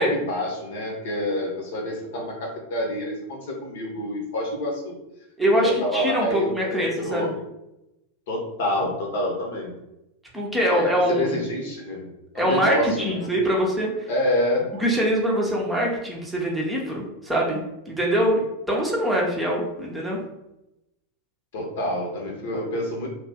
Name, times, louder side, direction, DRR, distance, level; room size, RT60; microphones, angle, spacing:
voice 1, 0.0-5.0 5.5-7.3 8.3-9.8 10.7-12.1 12.3-13.3 14.1-14.7 21.5-23.1, left 1 dB, 55° left, -1 dB, 1.0 m, -27 dB
voice 2, 5.4-7.3 10.3-11.4 12.3-14.1 14.8-17.6 17.9-20.2, equal, 5° right, -3 dB, 0.8 m, -23 dB
2.7 x 2.5 x 3.5 m, 0.89 s
figure-of-eight pair, 90°, 0 cm